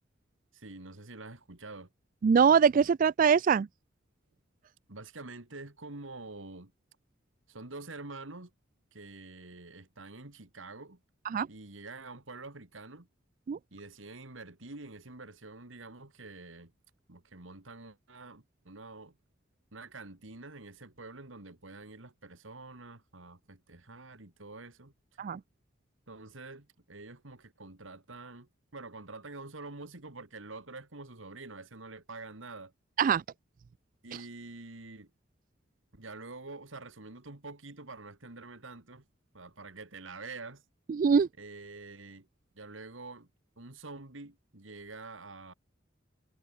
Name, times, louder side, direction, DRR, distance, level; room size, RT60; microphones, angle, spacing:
voice 1, 0.5-1.9 4.9-6.7 7.5-8.5 8.9-11.0 11.5-13.1 13.7-16.7 17.1-19.2 19.7-24.9 26.1-32.7 34.0-35.1 35.9-39.0 39.3-40.6 41.4-42.3 42.6-43.3 43.6-45.5, right 3 dB, 85° right, 2.4 m, -46 dB
voice 2, 2.2-3.7 11.3-11.5 13.5-13.6 25.2-25.4 33.0-33.2 41.0-41.3, right 6 dB, 45° right, 0.3 m, -23 dB
head